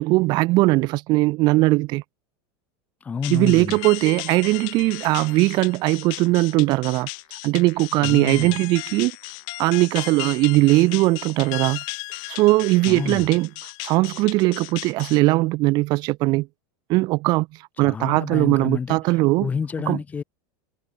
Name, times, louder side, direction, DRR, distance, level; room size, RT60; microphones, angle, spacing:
voice 1, 0.0-2.0 3.3-7.1 7.4-9.1 9.6-11.8 12.3-13.5 13.8-16.5 16.9-17.5 17.8-19.5 19.9-20.0, right 21 dB, 35° right, 2.2 m, -19 dB
voice 2, 3.0-3.8 8.0-8.6 12.8-13.3 17.8-20.2, left 6 dB, 10° left, 2.1 m, -29 dB
sound 1, 3.2-15.2, left 31 dB, 40° left, 5.1 m, -35 dB
supercardioid pair, 175°, 12 cm